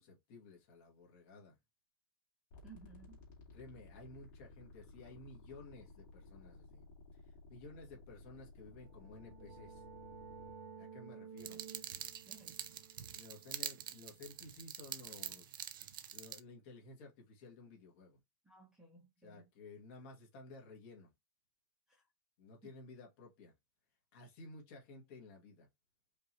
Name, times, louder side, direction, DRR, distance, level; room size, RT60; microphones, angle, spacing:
voice 1, 0.0-1.6 3.5-6.9 7.1-7.2 7.5-9.8 10.8-11.6 13.1-15.6 16.1-18.2 19.2-21.1 22.4-23.5 24.1-25.7, left 3 dB, 35° left, 1.6 m, -54 dB
sound 1, 2.5-10.5, left 2 dB, 50° left, 2.4 m, -57 dB
voice 2, 2.6-3.2 12.3-12.6 18.4-19.5 21.9-22.0, right 4 dB, 5° right, 1.1 m, -58 dB
sound 2, 8.8-14.3, right 6 dB, 35° right, 0.8 m, -54 dB
sound 3, 11.4-16.4, right 10 dB, 65° right, 0.6 m, -46 dB
5.2 x 2.8 x 3.1 m
supercardioid pair, 175°, 12 cm